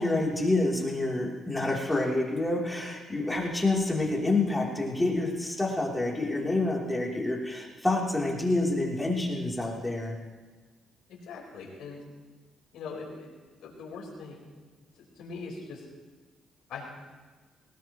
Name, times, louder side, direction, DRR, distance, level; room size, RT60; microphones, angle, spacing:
voice 1, 0.0-10.1, left 2 dB, 10° left, -3 dB, 3.4 m, -28 dB
voice 2, 11.1-12.0 12.7-14.4 15.2-15.8 16.7-16.9, left 4 dB, 80° left, -2 dB, 4.5 m, -41 dB
19.5 x 18.5 x 3.1 m, 1.3 s
cardioid pair, 90°, 0 cm